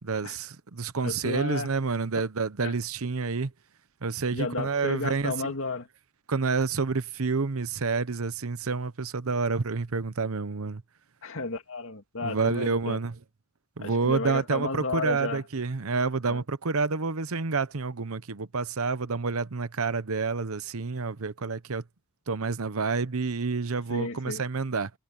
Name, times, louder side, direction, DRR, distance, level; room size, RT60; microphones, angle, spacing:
voice 1, 0.0-3.5 4.0-5.5 6.3-10.8 12.2-13.2 13.8-21.8 22.3-24.9, right 4 dB, 70° right, 0.9 m, -29 dB
voice 2, 1.0-1.7 2.6-2.7 4.3-5.9 11.2-13.0 13.8-15.4 16.3-16.4 23.9-24.4, left 3 dB, 65° left, 2.4 m, -33 dB
head